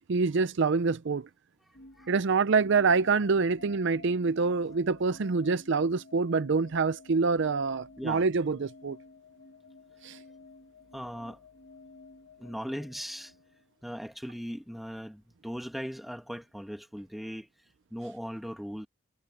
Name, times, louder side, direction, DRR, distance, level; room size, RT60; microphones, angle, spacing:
voice 1, 0.1-1.3 2.1-9.0 10.0-10.2, right 4 dB, 55° right, 0.5 m, -26 dB
sound 1, 1.7-13.8, left 2 dB, 55° left, 2.2 m, -53 dB
voice 2, 10.9-11.4 12.4-13.3 13.8-17.5 17.9-18.9, equal, ahead, 2.2 m, -39 dB
head